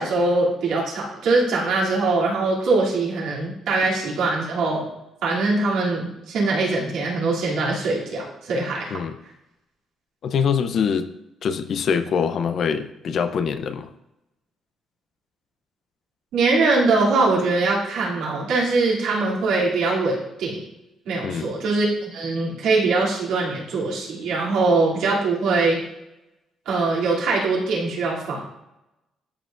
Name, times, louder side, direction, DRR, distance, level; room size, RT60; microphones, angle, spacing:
voice 1, 0.0-4.9 5.2-9.0 16.3-20.6 21.1-25.9 26.7-28.4, right 3 dB, 85° right, -5 dB, 2.8 m, -22 dB
voice 2, 10.2-11.1 11.4-13.9 21.2-21.6, left 6 dB, 60° left, 10 dB, 0.6 m, -24 dB
13.0 x 5.7 x 2.6 m, 0.91 s
cardioid pair, 90°, 0 cm